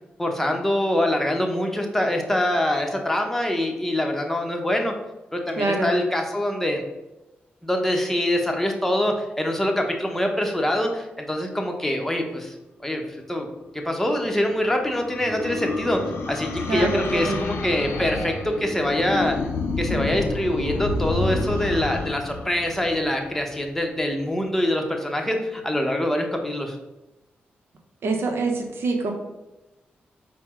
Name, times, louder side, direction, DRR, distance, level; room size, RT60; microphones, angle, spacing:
voice 1, 0.2-4.9 5.3-6.8 7.6-12.5 12.8-13.0 13.3-13.5 13.7-16.0 16.3-19.4 19.8-26.8, left 1 dB, 5° left, 2 dB, 0.8 m, -24 dB
voice 2, 5.6-5.9 16.7-17.4 28.0-29.1, right 3 dB, 75° right, 3 dB, 0.7 m, -25 dB
sound 1, 14.1-23.6, left 3 dB, 80° left, 0.5 m, -29 dB
4.3 x 2.1 x 3.5 m, 1.0 s
supercardioid pair, 50°, 4 cm